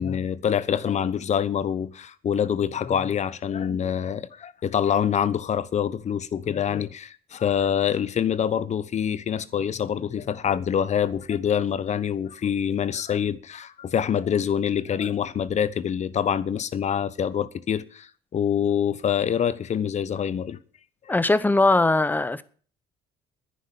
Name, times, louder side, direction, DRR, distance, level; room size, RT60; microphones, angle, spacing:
voice 1, 0.0-20.6, left 8 dB, 45° left, 1.0 m, -25 dB
voice 2, 21.1-22.4, left 2 dB, 10° left, 0.9 m, -20 dB
10.5 x 10.0 x 7.1 m
cardioid pair, 110°, 17 cm